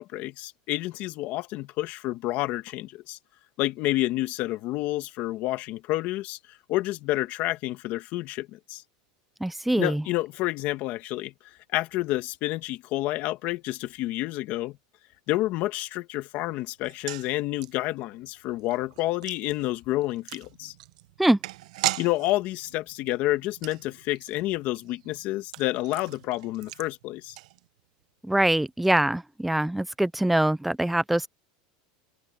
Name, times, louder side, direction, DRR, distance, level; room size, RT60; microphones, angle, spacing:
voice 1, 0.0-3.2 3.6-6.4 6.7-8.8 9.8-14.8 15.3-20.7 22.0-27.4, left 17 dB, 45° left, 1.8 m, -29 dB
voice 2, 9.4-10.0 21.2-21.4 28.3-31.3, right 1 dB, 5° right, 0.5 m, -23 dB
sound 1, 16.8-28.0 28.3-28.4 28.7-28.9, right 17 dB, 80° right, 0.9 m, -39 dB
supercardioid pair, 150°, 4 cm